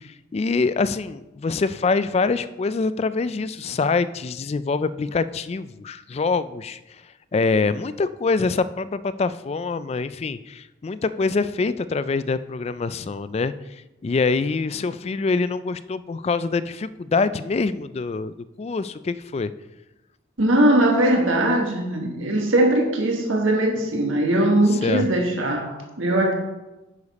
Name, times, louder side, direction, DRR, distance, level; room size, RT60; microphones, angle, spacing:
voice 1, 0.0-6.8 7.3-13.5 14.0-19.5 24.7-25.1, left 4 dB, 30° left, 14 dB, 0.3 m, -25 dB
voice 2, 20.4-26.3, right 1 dB, 85° right, 1 dB, 1.4 m, -20 dB
9.8 x 6.7 x 4.1 m, 1.0 s
head